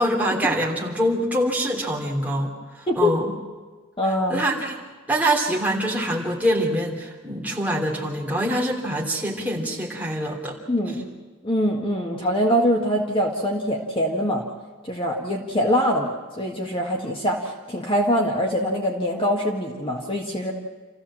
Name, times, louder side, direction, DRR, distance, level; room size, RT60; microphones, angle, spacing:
voice 1, 0.0-2.5 2.8-3.3 4.3-4.7 5.1-10.6, equal, 5° right, -2 dB, 3.2 m, -24 dB
voice 2, 2.9-3.2 4.0-4.4 10.7-11.1 11.4-14.4 14.8-20.5, equal, 25° left, 0 dB, 1.7 m, -23 dB
28.0 x 15.0 x 7.5 m, 1.4 s
head